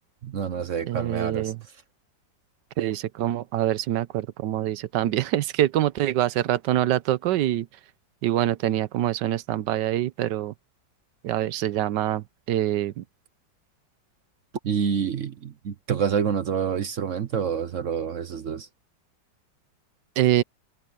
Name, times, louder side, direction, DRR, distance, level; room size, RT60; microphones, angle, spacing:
voice 1, 0.2-1.5 14.6-18.7, right 7 dB, 55° right, 1.0 m, -27 dB
voice 2, 0.9-1.6 2.8-7.7 8.2-10.5 11.2-13.0 20.2-20.4, right 13 dB, 75° right, 1.3 m, -25 dB
omnidirectional pair, 2.0 m